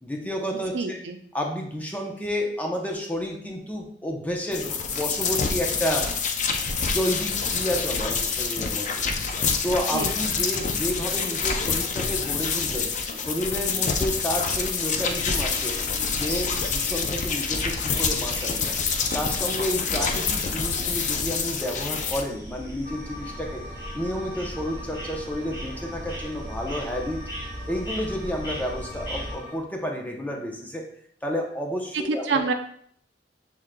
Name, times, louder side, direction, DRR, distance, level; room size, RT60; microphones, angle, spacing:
voice 1, 0.0-1.0 1.3-6.1 6.8-8.9 9.6-15.8 16.1-18.7 19.1-23.6 23.9-27.2 27.7-30.9 31.2-32.4, equal, 10° left, 1 dB, 0.7 m, -30 dB
voice 2, 0.7-1.2 9.9-10.1 32.1-32.5, right 4 dB, 80° right, 6 dB, 0.5 m, -26 dB
sound 1, 4.5-22.2, left 5 dB, 45° left, 0.4 m, -27 dB
sound 2, 15.1-29.4, equal, 25° left, 1.2 m, -38 dB
sound 3, 22.8-29.6, left 1 dB, 55° right, 0.9 m, -42 dB
6.3 x 3.6 x 2.2 m, 0.63 s
head